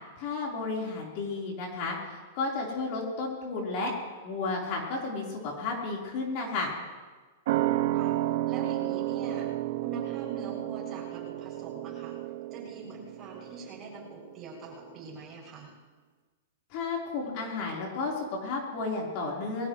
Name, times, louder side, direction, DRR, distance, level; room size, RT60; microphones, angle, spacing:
voice 1, 0.2-3.9 4.2-6.7 16.7-19.7, left 3 dB, 40° left, -2 dB, 4.0 m, -32 dB
sound 1, 7.5-14.5 14.8-14.9, right 15 dB, 55° right, 0.6 m, -32 dB
voice 2, 8.5-9.5 9.8-12.2 12.5-15.7, right 3 dB, 20° right, -4 dB, 7.0 m, -43 dB
22.0 x 19.0 x 3.2 m, 1.3 s
supercardioid pair, 160°, 0 cm